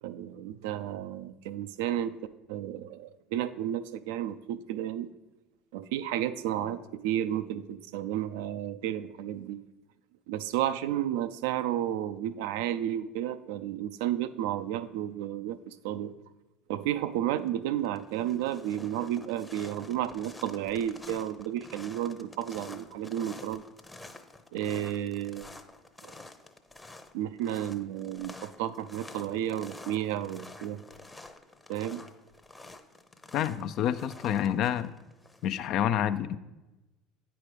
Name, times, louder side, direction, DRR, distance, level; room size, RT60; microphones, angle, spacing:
voice 1, 0.0-2.2 2.5-5.1 5.7-9.6 10.3-16.1 16.7-23.6 24.5-25.5 26.0-26.1 27.1-30.8 31.7-32.0, right 11 dB, 70° right, 13 dB, 0.4 m, -32 dB
sound 1, 17.1-17.5 17.8-35.7, left 2 dB, 15° left, 0.7 m, -49 dB
voice 2, 33.3-34.9 35.4-36.4, left 10 dB, 55° left, 12 dB, 0.4 m, -28 dB
9.1 x 4.8 x 5.0 m, 1.1 s
hypercardioid pair, 70°, 0 cm